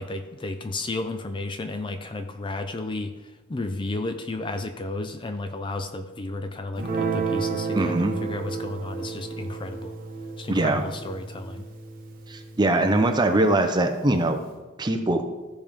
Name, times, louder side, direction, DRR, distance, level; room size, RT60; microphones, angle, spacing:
voice 1, 0.0-3.1 3.5-9.9 10.4-11.6, left 2 dB, 25° left, 8 dB, 0.4 m, -32 dB
Guitar, 6.8-13.4, right 5 dB, 45° right, 1.3 m, -32 dB
voice 2, 7.7-8.2 10.5-10.8 12.3-14.4 14.8-15.2, right 2 dB, 20° right, 5 dB, 0.7 m, -22 dB
14.5 x 5.1 x 3.6 m, 1.2 s
head